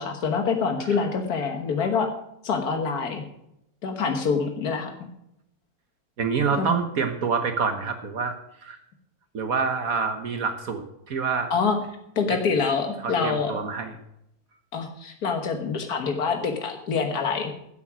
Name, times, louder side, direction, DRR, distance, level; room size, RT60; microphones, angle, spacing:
voice 1, 0.0-2.1 2.4-3.2 3.8-5.1 6.6-6.7 11.5-11.8 12.2-13.5 14.7-17.5, left 5 dB, 90° left, 4 dB, 1.9 m, -26 dB
voice 2, 6.2-8.3 8.6-8.8 9.3-11.5 13.0-13.9, right 5 dB, 70° right, 6 dB, 1.6 m, -27 dB
15.0 x 8.4 x 6.1 m, 0.79 s
omnidirectional pair, 1.6 m